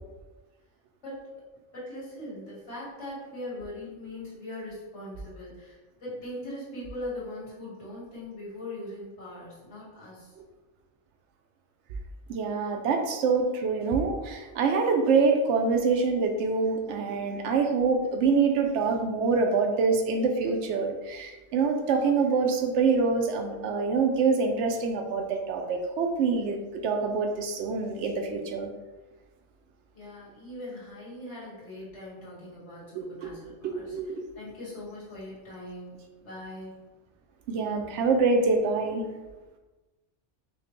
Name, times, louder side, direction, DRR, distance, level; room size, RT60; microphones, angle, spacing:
voice 1, 1.7-10.3 29.9-34.0 34.4-35.9 36.2-36.8, left 1 dB, 80° left, -8 dB, 1.9 m, -40 dB
voice 2, 12.3-28.7 32.9-33.3 33.6-34.3 37.5-39.0, right 4 dB, 80° right, 4 dB, 0.9 m, -25 dB
5.0 x 2.1 x 3.0 m, 1.2 s
omnidirectional pair, 1.2 m